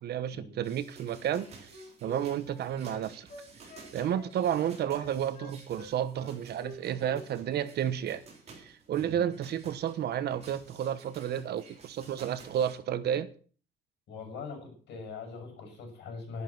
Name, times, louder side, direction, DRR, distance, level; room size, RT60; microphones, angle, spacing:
voice 1, 0.0-1.7 2.0-3.3 3.9-8.2 8.6-13.3, right 10 dB, 65° right, 1.2 m, -31 dB
sound 1, 0.6-12.8, right 4 dB, 35° right, 3.8 m, -53 dB
Wind instrument woodwind instrument, 1.2-5.9 6.2-7.3 7.5-7.7, left 2 dB, 50° left, 5.9 m, -48 dB
voice 2, 14.1-16.4, left 4 dB, 70° left, 6.8 m, -42 dB
11.5 x 11.5 x 6.0 m
cardioid pair, 175°, 18 cm